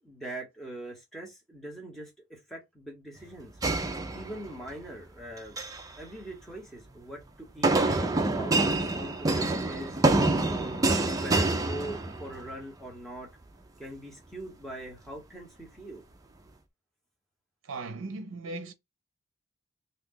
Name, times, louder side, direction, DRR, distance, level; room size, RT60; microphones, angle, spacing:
voice 1, 0.0-3.5 4.1-5.6 6.0-7.8 8.3-10.0 10.4-13.3 13.8-16.0, right 1 dB, ahead, 1.1 m, -42 dB
sound 1, 3.6-4.7 5.4-5.9 7.6-12.5, right 2 dB, 15° right, 0.4 m, -26 dB
voice 2, 17.6-18.7, right 3 dB, 80° right, 0.5 m, -37 dB
2.6 x 2.3 x 3.7 m
head